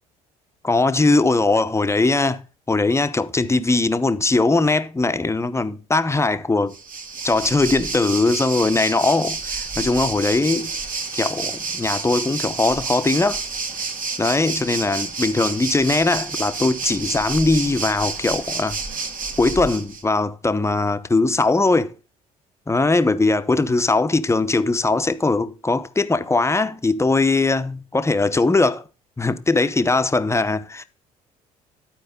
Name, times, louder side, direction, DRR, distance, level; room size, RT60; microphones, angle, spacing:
voice 1, 0.6-2.4 2.7-6.7 7.2-10.7 11.1-13.4 14.2-18.8 19.4-21.9 22.7-28.8 29.2-30.8, left 3 dB, 15° left, 0.9 m, -20 dB
Waves surf, 6.7-20.0, right 4 dB, 45° right, 1.6 m, -29 dB
11.5 x 4.6 x 5.2 m
hypercardioid pair, 55°, 19 cm